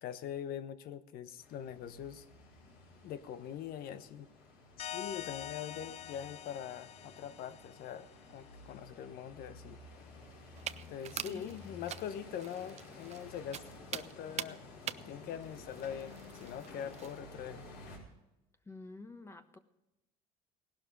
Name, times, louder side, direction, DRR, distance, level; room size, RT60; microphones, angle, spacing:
voice 1, 0.0-2.2 3.0-4.3 4.8-9.8 10.9-13.6 13.9-14.6 15.1-17.7, left 9 dB, 65° left, 12 dB, 1.1 m, -43 dB
sound 1, 1.4-18.0, left 2 dB, 85° left, 5.4 m, -53 dB
sound 2, 4.8-8.2, left 11 dB, 40° left, 0.5 m, -45 dB
sound 3, 10.6-17.2, right 10 dB, 45° right, 0.6 m, -45 dB
voice 2, 11.2-11.5 18.7-19.6, left 2 dB, 15° left, 8 dB, 1.2 m, -49 dB
18.0 x 12.0 x 5.3 m, 0.94 s
cardioid pair, 110°, 17 cm